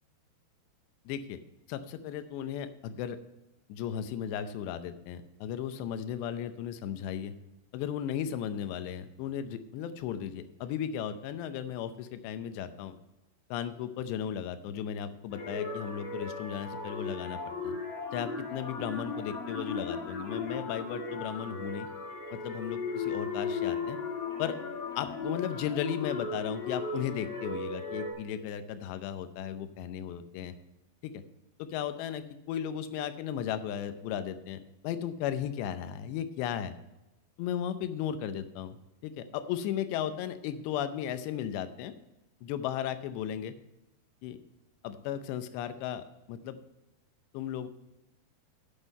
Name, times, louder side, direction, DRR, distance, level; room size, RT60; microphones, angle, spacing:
voice 1, 1.1-1.4 1.7-3.2 3.7-7.3 7.7-13.0 13.5-17.8 18.1-21.9 22.3-24.0 24.4-24.5 25.0-30.5 31.0-31.2 31.6-36.8 37.4-38.8 39.0-41.9 42.4-43.6 44.2-44.4 44.8-46.6 47.3-47.7, left 9 dB, 80° left, 10 dB, 2.9 m, -35 dB
sound 1, 15.3-28.1, left 4 dB, 45° left, 2.4 m, -36 dB
9.0 x 8.2 x 5.4 m, 0.95 s
omnidirectional pair, 5.0 m